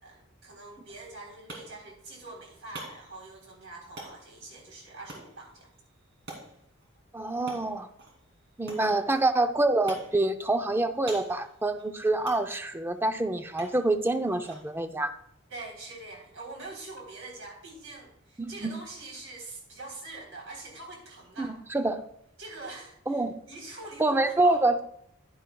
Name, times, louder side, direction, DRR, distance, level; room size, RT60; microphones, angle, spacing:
voice 1, 0.0-5.7 8.9-9.0 15.5-21.6 22.4-24.6, right 2 dB, 80° right, -1 dB, 3.5 m, -44 dB
sound 1, 0.9-16.5, right 2 dB, 60° right, 2.4 m, -50 dB
voice 2, 7.1-7.9 8.6-15.1 18.4-18.7 21.4-22.0 23.1-23.3 24.0-24.8, right 2 dB, 10° right, 8 dB, 0.5 m, -26 dB
10.5 x 10.5 x 2.3 m, 0.71 s
head